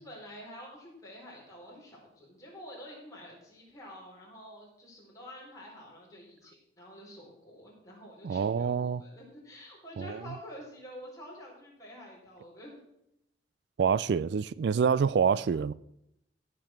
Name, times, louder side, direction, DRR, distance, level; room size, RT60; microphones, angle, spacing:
voice 1, 0.0-12.8, equal, 20° left, 4.7 m, -48 dB
voice 2, 8.2-9.0 10.0-10.2 13.8-15.7, right 6 dB, 70° right, 0.3 m, -27 dB
15.0 x 6.9 x 6.1 m
head